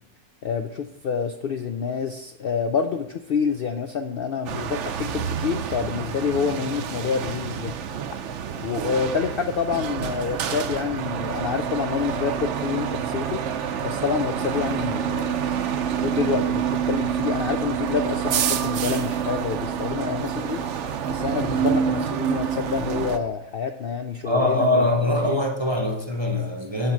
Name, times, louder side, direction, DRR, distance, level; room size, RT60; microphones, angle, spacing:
voice 1, 0.4-7.7 8.6-13.4 13.8-15.4 16.0-20.7 21.1-24.9 25.3-25.4, left 6 dB, 85° left, 0.5 m, -27 dB
sound 1, 4.5-23.2, right 8 dB, 60° right, 0.8 m, -27 dB
voice 2, 24.2-26.9, left 1 dB, 25° right, 0.6 m, -22 dB
8.7 x 4.4 x 7.2 m
omnidirectional pair, 1.6 m